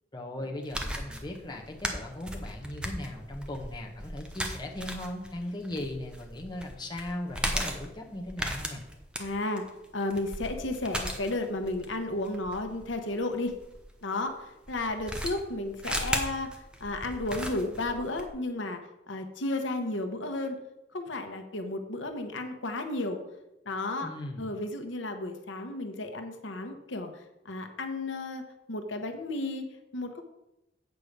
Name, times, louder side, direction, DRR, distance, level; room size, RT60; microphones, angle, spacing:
voice 1, 0.1-8.8 24.0-24.5, left 1 dB, 25° left, 0 dB, 1.1 m, -38 dB
sound 1, 0.6-13.8 14.7-18.3, equal, 5° right, 0.8 m, -36 dB
voice 2, 9.2-9.6 9.9-13.5 14.0-14.3 14.7-16.5 16.8-18.8 19.1-20.6 20.9-23.2 23.7-24.1 24.4-27.1 27.4-28.4 28.7-29.6 29.9-30.2, left 2 dB, 85° left, 6 dB, 1.0 m, -33 dB
8.3 x 4.7 x 6.6 m, 0.92 s
head